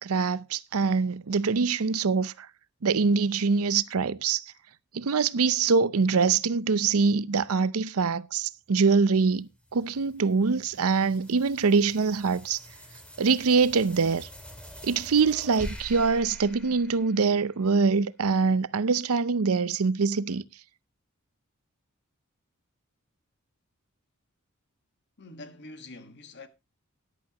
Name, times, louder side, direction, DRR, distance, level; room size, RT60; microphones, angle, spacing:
voice 1, 0.0-2.3 2.8-4.4 4.9-12.6 13.2-14.3 14.8-20.4, right 4 dB, 75° right, 0.6 m, -24 dB
sound 1, 9.2-17.8, equal, 5° left, 2.4 m, -45 dB
voice 2, 25.2-26.5, left 2 dB, 55° left, 1.5 m, -45 dB
14.0 x 11.0 x 2.9 m
head